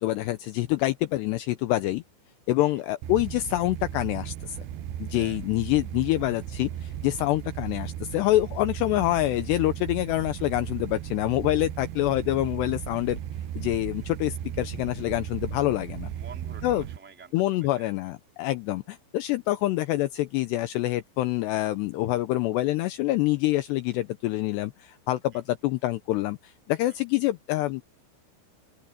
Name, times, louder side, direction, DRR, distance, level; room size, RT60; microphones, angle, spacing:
voice 1, 0.0-2.0 2.5-4.6 5.0-13.2 13.6-16.1 16.6-16.9 17.3-27.8, left 16 dB, 85° left, 2.5 m, -26 dB
sound 1, 3.0-17.0, right 11 dB, 75° right, 2.4 m, -36 dB
voice 2, 16.0-17.9 25.3-25.4, right 5 dB, 5° right, 2.3 m, -49 dB
open air
omnidirectional pair, 5.7 m